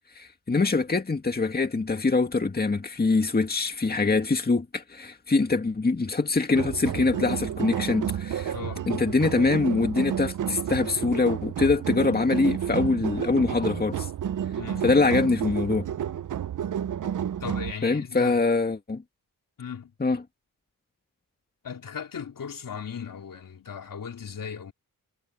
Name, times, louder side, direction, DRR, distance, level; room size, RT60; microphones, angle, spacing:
voice 1, 0.2-8.5 8.9-14.1 14.8-15.9 17.8-19.0 20.0-20.2, left 3 dB, 30° left, 2.0 m, -24 dB
sound 1, 6.5-17.7, right 9 dB, 65° right, 0.6 m, -31 dB
voice 2, 17.4-18.4 19.6-19.9 21.6-24.7, left 6 dB, 75° left, 3.8 m, -37 dB
wide cardioid pair, 110°, 33 cm